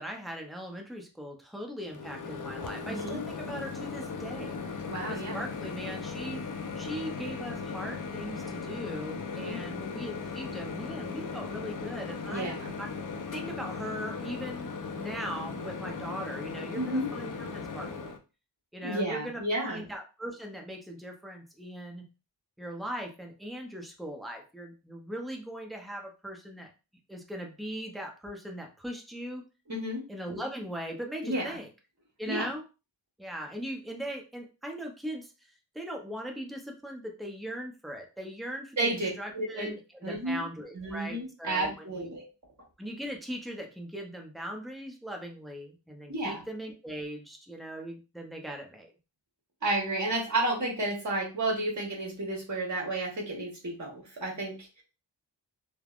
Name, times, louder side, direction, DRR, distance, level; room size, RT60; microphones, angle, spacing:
voice 1, 0.0-4.6 5.1-6.4 6.8-12.9 13.1-14.7 15.0-18.2 18.7-22.0 22.6-26.7 27.1-29.4 30.1-31.7 32.2-32.6 33.2-35.5 35.7-42.1 42.8-48.9, equal, ahead, 1 dB, 0.6 m, -39 dB
Microwave oven, 1.9-18.2, left 5 dB, 45° left, 0.5 m, -37 dB
voice 2, 2.8-3.2 4.9-5.4 9.3-9.6 12.3-12.7 16.7-17.1 18.8-19.8 29.7-30.0 31.2-31.6 32.3-32.5 38.8-39.7 40.0-40.4 40.7-42.3 46.1-46.4 49.6-54.8, right 2 dB, 40° right, -2 dB, 1.2 m, -32 dB
3.2 x 2.1 x 2.4 m, 0.31 s
wide cardioid pair, 75°, 44 cm